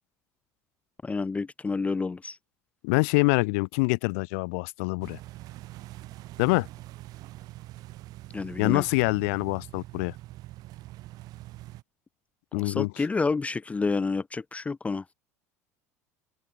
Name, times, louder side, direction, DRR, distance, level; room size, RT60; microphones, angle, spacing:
voice 1, 1.0-2.4 8.3-8.8 12.5-15.0, left 4 dB, 15° left, 0.7 m, -29 dB
voice 2, 2.8-5.2 6.4-6.7 8.6-10.1 12.5-13.0, left 30 dB, 55° left, 0.5 m, -25 dB
sound 1, 5.0-11.8, right 17 dB, 50° right, 3.3 m, -44 dB
open air
figure-of-eight pair, 70°, 9 cm